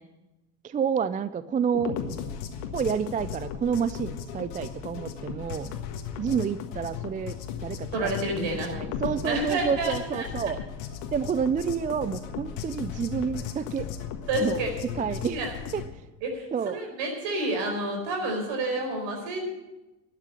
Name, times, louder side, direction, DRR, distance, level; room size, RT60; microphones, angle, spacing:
voice 1, 0.6-2.0 2.7-5.7 6.2-7.4 7.6-10.6 11.1-13.9 14.4-14.6 15.0-15.4 15.7-15.8 16.5-16.8, right 7 dB, 15° right, 16 dB, 0.4 m, -29 dB
sound 1, 1.7-15.9, left 8 dB, 70° left, 1.7 m, -36 dB
voice 2, 7.9-8.7 9.2-10.3 14.3-14.7 15.3-15.5 16.2-19.4, right 2 dB, 65° right, 2 dB, 4.8 m, -29 dB
12.0 x 8.3 x 9.8 m, 1.1 s
hypercardioid pair, 65°, 50 cm